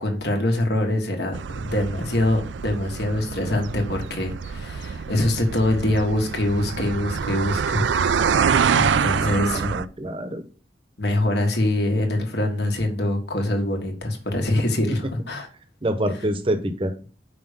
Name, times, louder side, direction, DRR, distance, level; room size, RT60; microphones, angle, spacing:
voice 1, 0.0-9.7 11.0-15.5, left 1 dB, 60° left, 3 dB, 1.6 m, -24 dB
sound 1, 1.3-9.9, right 6 dB, 80° right, 0.4 m, -25 dB
voice 2, 9.2-10.4 15.8-16.9, right 1 dB, 30° right, 8 dB, 0.9 m, -26 dB
5.9 x 5.0 x 6.7 m, 0.39 s
head